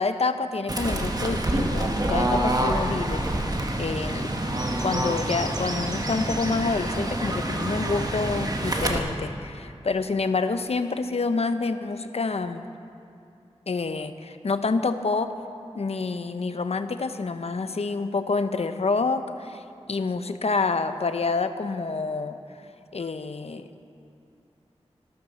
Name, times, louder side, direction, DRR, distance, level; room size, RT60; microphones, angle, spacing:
voice 1, 0.0-3.3 3.8-4.3 4.8-12.6 13.7-15.3 15.7-19.6 19.9-22.4 22.9-23.6, left 4 dB, 65° left, 9 dB, 0.8 m, -27 dB
Fowl / Bird, 0.7-9.0, right 1 dB, 35° right, 1.6 m, -27 dB
15.0 x 13.0 x 6.4 m, 2.6 s
wide cardioid pair, 60°, 11 cm